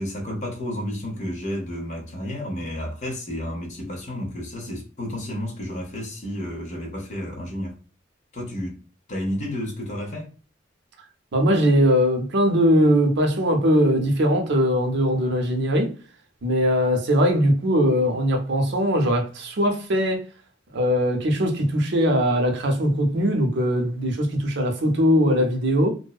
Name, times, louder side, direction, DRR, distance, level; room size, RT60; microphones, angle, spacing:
voice 1, 0.0-7.8 8.3-8.8 9.1-10.3, left 1 dB, 40° left, 0.8 m, -31 dB
voice 2, 11.3-15.9 16.4-20.2 20.7-25.9, equal, 60° right, 0.6 m, -20 dB
2.6 x 2.1 x 2.3 m
head